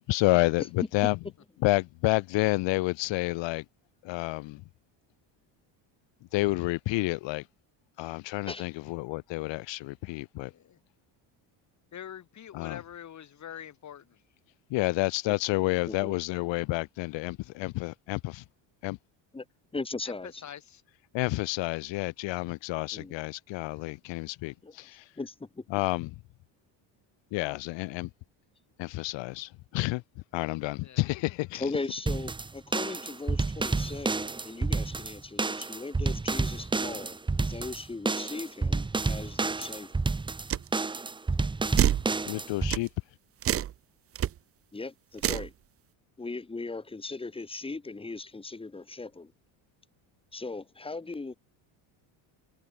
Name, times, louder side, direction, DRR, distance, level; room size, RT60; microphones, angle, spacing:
voice 1, 0.1-1.1 1.6-3.6 4.0-4.6 6.3-7.5 8.0-10.5 12.5-12.8 14.7-18.4 18.8-19.0 21.1-25.1 25.7-26.1 27.3-28.1 28.8-30.0 30.3-31.6 42.3-42.9, left 21 dB, 65° left, 1.4 m, -29 dB
voice 2, 10.4-10.8 11.9-14.2 20.4-20.8 30.8-31.1, left 9 dB, 35° left, 7.0 m, -44 dB
voice 3, 19.7-20.4 22.9-23.1 24.6-24.7 25.2-25.7 31.5-40.0 44.7-45.5 46.2-49.3 50.3-51.4, left 3 dB, 10° left, 5.6 m, -38 dB
sound 1, 32.1-42.7, right 3 dB, 10° right, 1.2 m, -30 dB
sound 2, 40.5-40.7 41.8-42.1 42.7-42.9 43.4-43.7 44.2-44.3 45.2-45.5, right 11 dB, 30° right, 0.7 m, -25 dB
cardioid pair, 160°, 47 cm